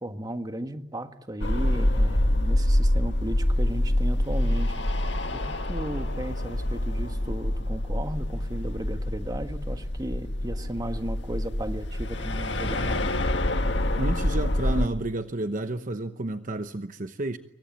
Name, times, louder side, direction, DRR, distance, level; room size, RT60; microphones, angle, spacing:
voice 1, 0.0-13.2, right 1 dB, 20° right, 1.6 m, -35 dB
sound 1, 1.4-14.9, left 1 dB, 70° left, 1.9 m, -26 dB
voice 2, 14.0-17.4, right 2 dB, 45° right, 1.0 m, -31 dB
26.5 x 24.0 x 8.5 m
head